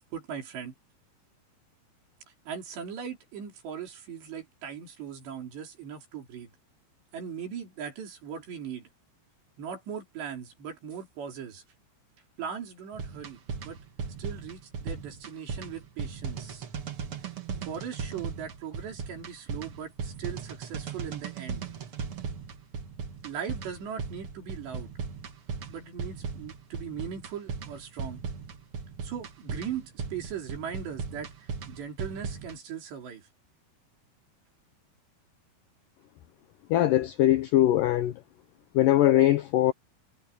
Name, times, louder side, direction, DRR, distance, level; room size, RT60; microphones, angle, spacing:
voice 1, 0.1-0.7 2.5-6.5 7.1-8.9 9.6-11.6 12.4-13.8 14.2-16.7 17.6-21.6 23.2-24.9 25.7-28.2 29.0-33.3, right 7 dB, 85° right, 6.4 m, -39 dB
sound 1, 12.9-32.6, right 5 dB, 50° right, 1.7 m, -37 dB
voice 2, 36.7-38.1 38.7-39.7, left 14 dB, 80° left, 1.9 m, -21 dB
omnidirectional pair, 4.8 m